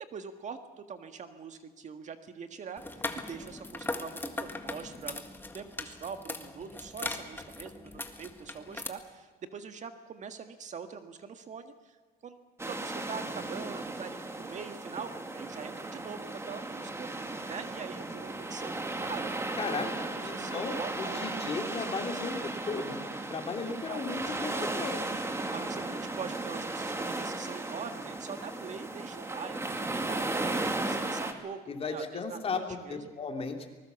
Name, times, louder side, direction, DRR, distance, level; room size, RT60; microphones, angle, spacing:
voice 1, 0.1-5.2 5.5-12.0 12.2-12.4 12.7-19.3 19.6-22.1 22.4-22.5 23.7-24.2 24.5-24.7 25.5-33.1, right 6 dB, 45° right, 7 dB, 1.8 m, -43 dB
sound 1, 2.8-8.9, left 2 dB, 10° left, 1.8 m, -39 dB
sound 2, 12.6-31.3, right 2 dB, 15° right, 2.2 m, -36 dB
voice 2, 19.6-19.9 20.2-22.4 22.7-23.0 23.3-25.0 31.7-32.6 32.9-33.7, left 4 dB, 35° left, 4 dB, 3.2 m, -35 dB
24.0 x 20.5 x 7.1 m, 1.3 s
cardioid pair, 110°, 17 cm